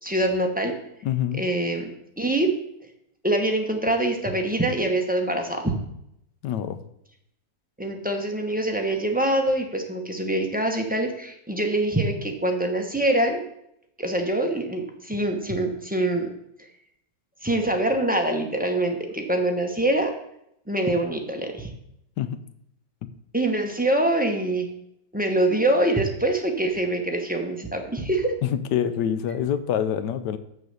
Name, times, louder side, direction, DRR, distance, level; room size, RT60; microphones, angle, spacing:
voice 1, 0.0-0.8 1.3-1.9 2.2-2.5 3.2-5.8 7.8-13.4 14.0-16.3 16.6-16.7 17.4-20.1 20.7-21.7 23.3-24.7 25.1-28.3, right 1 dB, 10° right, 2 dB, 0.6 m, -24 dB
voice 2, 1.0-1.4 6.4-6.8 22.2-22.4 28.4-30.4, left 9 dB, 75° left, 12 dB, 1.2 m, -26 dB
6.7 x 6.6 x 6.6 m, 0.77 s
omnidirectional pair, 1.9 m